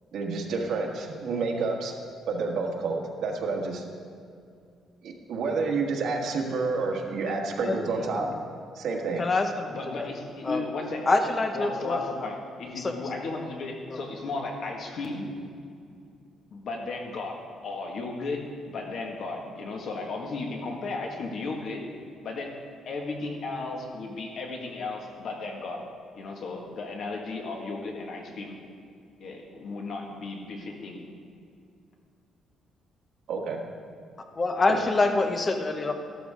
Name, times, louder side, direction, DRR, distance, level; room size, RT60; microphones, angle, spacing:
voice 1, 0.1-1.9 2.3-3.8 5.0-8.3 8.7-9.2 33.3-33.6 34.7-34.8, right 4 dB, 70° right, -1 dB, 1.6 m, -29 dB
voice 2, 7.6-8.3 9.2-10.1 10.4-10.6 11.0-12.0 12.8-13.0 13.9-14.0 34.4-35.9, left 3 dB, 25° left, 5 dB, 0.8 m, -26 dB
voice 3, 9.7-11.0 11.5-15.3 16.5-17.4 17.6-18.4 18.6-21.8 22.2-22.5 22.8-25.8 26.1-28.6 29.2-31.0, left 3 dB, 55° left, 1 dB, 1.8 m, -35 dB
14.0 x 12.5 x 3.7 m, 2.3 s
cardioid pair, 165°, 0 cm